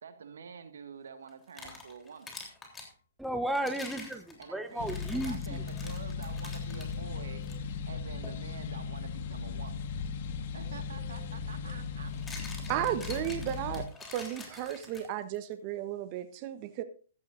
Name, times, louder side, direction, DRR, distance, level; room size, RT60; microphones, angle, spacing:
voice 1, 0.0-2.4 4.4-9.9 10.5-13.2, right 6 dB, 75° right, 8 dB, 1.7 m, -48 dB
sound 1, 1.3-2.9 3.5-6.9 7.4-7.6 8.2-8.4 10.6-10.7 11.9-15.4, left 3 dB, 15° left, 3.4 m, -47 dB
voice 2, 3.2-5.6, right 1 dB, ahead, 8 dB, 0.9 m, -34 dB
sound 2, 4.8-13.9, left 5 dB, 55° left, 1.6 m, -37 dB
voice 3, 12.7-13.9 14.1-16.8, right 11 dB, 40° right, 10 dB, 1.0 m, -34 dB
15.5 x 12.5 x 2.6 m, 0.39 s
hypercardioid pair, 130°, 0 cm